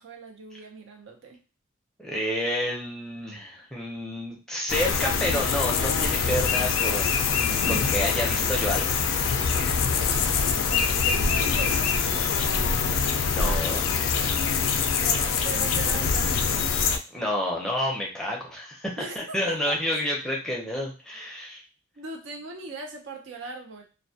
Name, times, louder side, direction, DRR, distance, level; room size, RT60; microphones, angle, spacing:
voice 1, 0.0-1.4 10.4-12.5 15.0-16.6 19.0-20.1 22.0-23.8, right 4 dB, 60° right, 3 dB, 0.5 m, -39 dB
voice 2, 2.0-8.8 13.3-13.8 17.1-21.6, equal, 5° left, -2 dB, 0.5 m, -29 dB
sound 1, 4.7-17.0, left 6 dB, 70° left, 0.3 m, -24 dB
2.2 x 2.1 x 2.6 m, 0.33 s
head